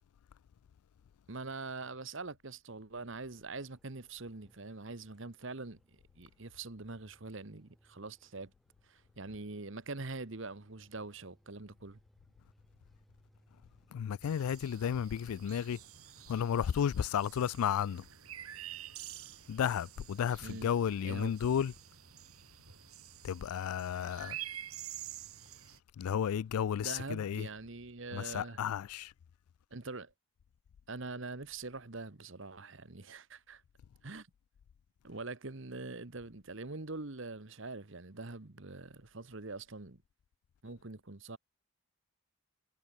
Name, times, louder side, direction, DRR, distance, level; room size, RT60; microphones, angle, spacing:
voice 1, 1.3-8.5 8.8-12.0 20.4-20.7 21.0-21.3 26.8-28.6 29.7-30.1 30.9-33.6 34.0-34.3 35.0-40.0 40.6-41.4, right 3 dB, 55° right, 1.3 m, -44 dB
sound 1, 3.1-22.8, equal, ahead, 3.5 m, -70 dB
voice 2, 13.9-15.8 16.3-18.0 19.5-21.7 23.2-24.4 26.0-27.5 28.1-29.1, left 8 dB, 85° left, 0.3 m, -33 dB
sound 2, 14.2-25.8, right 11 dB, 80° right, 2.9 m, -49 dB
head